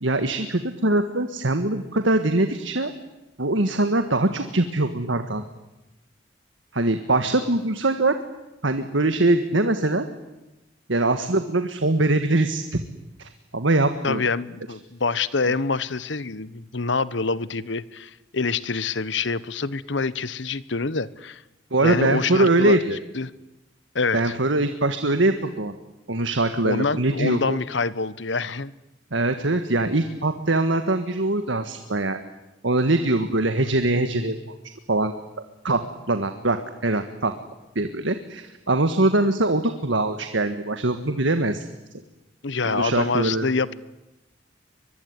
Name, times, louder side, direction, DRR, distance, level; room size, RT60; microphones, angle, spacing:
voice 1, 0.0-2.9 3.4-5.4 6.7-8.2 8.6-10.0 10.9-12.8 13.2-14.2 21.7-23.0 24.1-25.7 26.1-27.6 29.1-32.2 32.6-34.4 34.9-35.1 35.6-35.8 36.1-36.6 36.8-37.3 37.8-41.7 42.6-43.5, right 2 dB, 80° right, 8 dB, 1.7 m, -22 dB
voice 2, 14.0-21.4 21.8-22.8 23.1-23.3 23.9-24.4 26.6-28.7 42.4-43.7, left 4 dB, 75° left, 18 dB, 1.1 m, -26 dB
24.0 x 22.5 x 9.7 m, 0.97 s
head